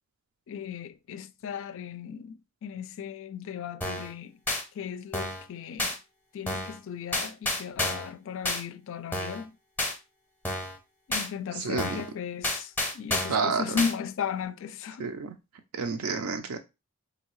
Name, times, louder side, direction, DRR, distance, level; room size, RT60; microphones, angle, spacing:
voice 1, 0.5-4.4 4.7-6.0 6.3-9.5 11.1-15.2, left 7 dB, 60° left, 0.3 m, -36 dB
sound 1, 3.8-4.1 4.5-4.6 5.1-5.5 5.8-6.0 6.5-6.8 7.1-8.1 8.4-8.6 9.1-9.4 9.8-9.9 10.4-10.8 11.1-11.3 11.8-12.1 12.4-13.4 13.8-13.9, left 1 dB, 10° left, 0.6 m, -30 dB
voice 2, 13.3-13.8 15.0-15.3 15.7-16.6, right 5 dB, 70° right, 0.4 m, -29 dB
4.0 x 2.7 x 3.0 m
head